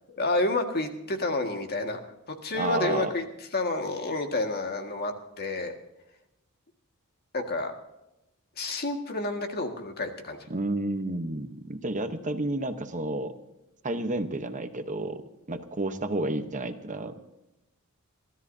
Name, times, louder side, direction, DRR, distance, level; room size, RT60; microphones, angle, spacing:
voice 1, 0.2-2.0 2.3-3.2 3.5-5.7 7.3-7.7 8.6-10.4, left 2 dB, 45° left, 4 dB, 1.8 m, -29 dB
voice 2, 2.5-3.1 10.5-13.3 13.8-15.2 15.5-17.2, right 2 dB, 35° right, 8 dB, 1.0 m, -31 dB
29.0 x 13.0 x 2.8 m, 0.93 s
head